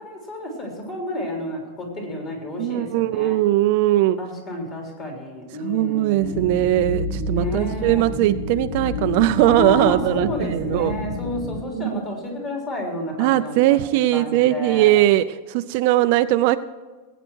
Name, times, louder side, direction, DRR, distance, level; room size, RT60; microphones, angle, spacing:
voice 1, 0.0-3.4 4.2-6.6 7.3-8.0 9.4-14.9, left 1 dB, 25° left, 0 dB, 3.6 m, -30 dB
voice 2, 2.6-4.2 5.6-11.0 11.8-11.9 13.2-16.6, right 15 dB, 45° right, 10 dB, 0.4 m, -20 dB
sound 1, 6.2-11.6, left 3 dB, 40° left, 1.4 m, -29 dB
19.0 x 9.0 x 4.6 m, 1.3 s
supercardioid pair, 170°, 0 cm